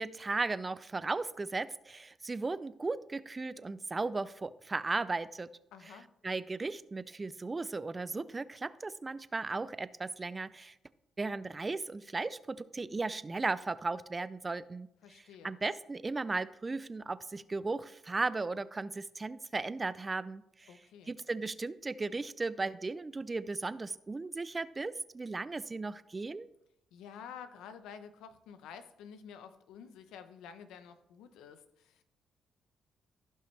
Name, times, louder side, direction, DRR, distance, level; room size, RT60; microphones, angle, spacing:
voice 1, 0.0-5.5 6.2-10.7 11.2-14.9 15.4-20.7 21.1-26.5, right 3 dB, 25° right, 16 dB, 0.4 m, -36 dB
voice 2, 5.7-6.1 15.0-15.6 20.7-21.1 26.9-32.0, left 7 dB, 90° left, 10 dB, 0.8 m, -50 dB
15.0 x 5.6 x 3.3 m, 0.79 s
cardioid pair, 90°, 0 cm